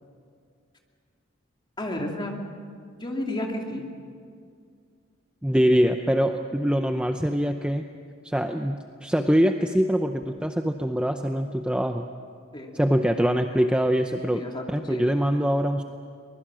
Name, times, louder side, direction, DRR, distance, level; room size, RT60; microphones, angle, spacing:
voice 1, 1.8-2.3 3.0-3.9 12.5-12.7 14.3-15.0, left 1 dB, 25° left, 1 dB, 2.7 m, -31 dB
voice 2, 5.4-7.8 8.2-12.1 12.7-14.4 14.7-15.8, equal, 5° right, 5 dB, 0.6 m, -23 dB
23.5 x 21.0 x 7.5 m, 2.2 s
head